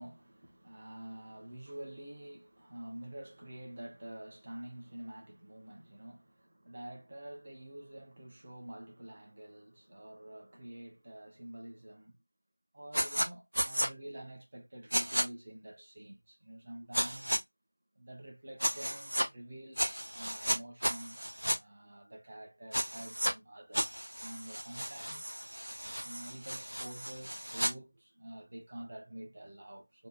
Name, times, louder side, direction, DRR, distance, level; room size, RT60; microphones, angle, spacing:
voice 1, 0.0-12.2 12.7-17.4 18.0-21.2 21.5-25.3 26.0-30.1, right 1 dB, 15° right, 0.4 m, -48 dB
sound 1, 12.9-13.3 13.5-13.9 14.9-15.2 16.9-17.4 18.6-19.3 19.8-21.6 22.7-23.3 23.7-27.7, equal, 80° right, 0.5 m, -33 dB
2.6 x 2.0 x 2.5 m
figure-of-eight pair, 180°, 0 cm